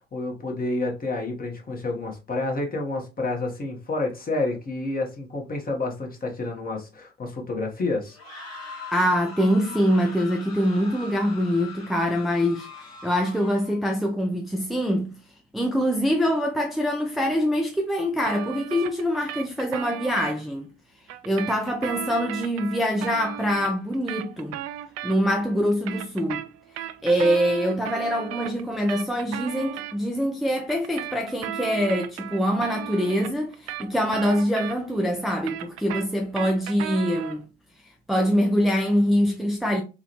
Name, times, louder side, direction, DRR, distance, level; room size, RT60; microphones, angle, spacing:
voice 1, 0.1-8.2, left 2 dB, 30° left, 1.3 m, -29 dB
sound 1, 8.1-13.8, left 4 dB, 55° left, 1.8 m, -41 dB
voice 2, 8.9-15.1 15.5-20.7 21.2-24.6 25.0-26.5 27.0-37.4 37.8-39.8, equal, ahead, 0.6 m, -24 dB
sound 2, 18.2-20.3 21.1-25.4 25.7-29.9 30.7-35.0 35.3-37.4, right 12 dB, 50° right, 0.5 m, -35 dB
3.7 x 2.4 x 2.9 m
hypercardioid pair, 60°, 31 cm